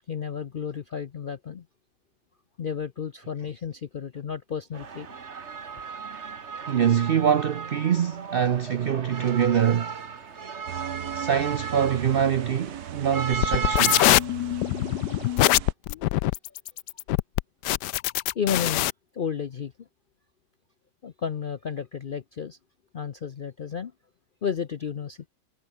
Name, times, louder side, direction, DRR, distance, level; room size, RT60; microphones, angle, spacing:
voice 1, 0.1-1.6 2.6-5.1 18.3-18.9 19.1-19.7 21.0-22.6 22.9-23.9 24.4-25.3, left 7 dB, 65° left, 0.5 m, -32 dB
sound 1, 4.7-14.2, right 6 dB, 45° right, 1.7 m, -35 dB
voice 2, 6.7-9.9 11.1-14.0, right 8 dB, 90° right, 0.5 m, -24 dB
sound 2, 10.7-15.7, right 11 dB, 70° right, 1.3 m, -38 dB
sound 3, 13.3-18.9, left 16 dB, 85° left, 1.2 m, -23 dB
omnidirectional pair, 1.8 m